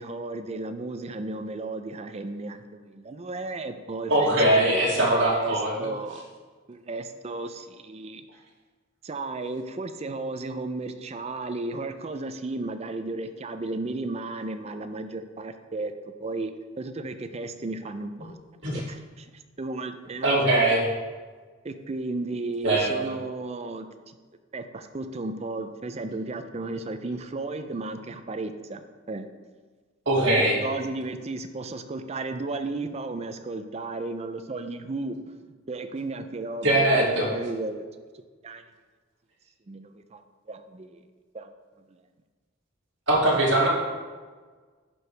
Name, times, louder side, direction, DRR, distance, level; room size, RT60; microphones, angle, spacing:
voice 1, 0.0-6.3 6.7-8.2 9.0-15.9 16.2-16.5 16.8-18.3 18.9-20.4 21.6-24.2 24.5-29.3 30.2-35.2 35.7-37.9 38.4-38.6 39.7-40.2 40.5-41.0 41.3-41.5 41.9-42.0, right 2 dB, 30° right, 9 dB, 0.4 m, -34 dB
voice 2, 4.1-5.7 18.6-18.8 20.2-20.9 22.6-22.9 30.1-30.6 36.6-37.3 43.1-43.7, right 1 dB, 65° right, -5 dB, 2.2 m, -21 dB
11.5 x 4.7 x 3.3 m, 1.4 s
head